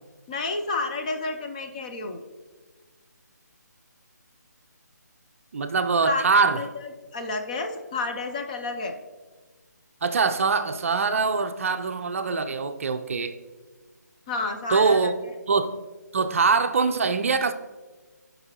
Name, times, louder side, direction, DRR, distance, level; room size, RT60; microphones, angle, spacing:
voice 1, 0.3-2.2 6.0-6.2 6.6-6.7 7.1-9.0 14.3-15.1, left 3 dB, 25° left, 4 dB, 0.6 m, -30 dB
voice 2, 5.5-6.6 10.0-13.4 14.7-15.1 15.5-15.7 16.1-17.5, right 4 dB, 45° right, 8 dB, 0.5 m, -23 dB
15.0 x 5.4 x 3.0 m, 1.3 s
figure-of-eight pair, 160°, 10 cm